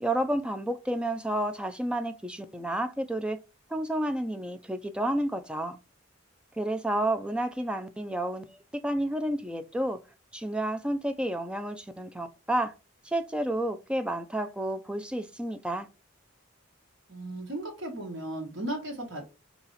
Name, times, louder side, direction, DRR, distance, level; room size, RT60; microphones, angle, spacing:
voice 1, 0.0-3.4 3.7-5.8 6.6-8.5 8.8-10.0 10.3-12.7 13.0-15.9, right 1 dB, 5° right, 0.4 m, -30 dB
voice 2, 17.1-19.2, right 1 dB, 60° right, 1.4 m, -36 dB
4.1 x 2.9 x 4.0 m
head